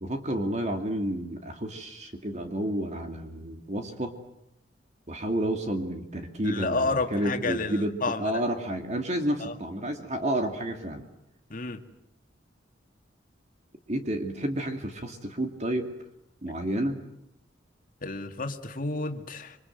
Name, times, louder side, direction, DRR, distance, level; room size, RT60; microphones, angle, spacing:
voice 1, 0.0-4.2 5.1-11.0 13.9-16.0 16.4-17.0, right 1 dB, 40° right, 5 dB, 2.4 m, -30 dB
voice 2, 6.4-8.4 9.4-9.5 11.5-11.8 18.0-19.6, left 3 dB, 50° left, 5 dB, 2.1 m, -30 dB
26.5 x 25.0 x 7.9 m, 0.80 s
head